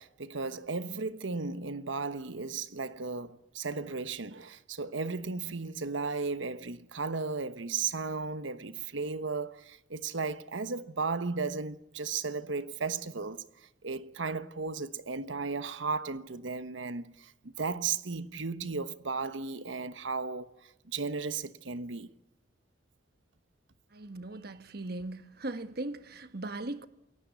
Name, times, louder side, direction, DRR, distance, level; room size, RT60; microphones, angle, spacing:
voice 1, 0.0-13.4 13.8-22.1, right 4 dB, 85° right, 1.2 m, -35 dB
voice 2, 23.9-26.9, right 2 dB, 55° right, 1.3 m, -39 dB
27.5 x 17.0 x 8.3 m
head